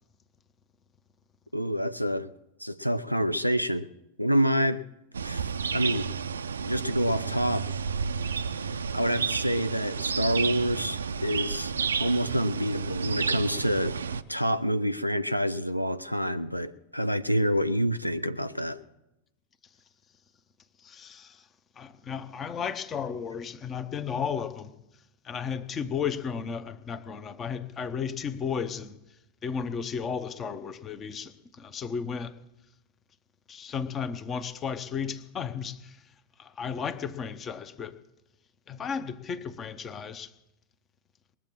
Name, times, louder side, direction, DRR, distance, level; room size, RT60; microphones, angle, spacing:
voice 1, 1.5-2.3 2.6-3.9 4.2-4.8 5.2-6.1 6.6-7.6 8.6-11.7 12.0-14.0 14.3-18.8, equal, 90° left, 0.4 m, -27 dB
sound 1, 5.1-14.2, right 5 dB, 70° right, 0.4 m, -31 dB
voice 2, 20.8-21.5 21.8-24.7 25.2-29.0 29.4-32.4 33.5-36.0 36.4-38.0 38.7-40.3, left 6 dB, 25° left, 0.9 m, -34 dB
20.0 x 7.4 x 7.5 m
figure-of-eight pair, 90°, 0 cm